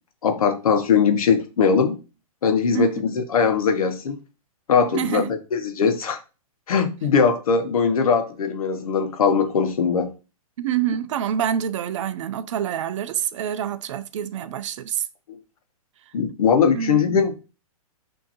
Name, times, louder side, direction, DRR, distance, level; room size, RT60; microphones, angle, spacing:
voice 1, 0.2-2.0 2.4-4.2 4.7-6.2 6.7-10.1 15.3-15.4 16.1-17.3, left 6 dB, 70° left, 1.0 m, -20 dB
voice 2, 2.7-3.0 4.9-5.3 10.6-15.1 16.7-17.2, right 9 dB, 55° right, 0.5 m, -26 dB
6.2 x 2.8 x 2.9 m
hypercardioid pair, 125°, 19 cm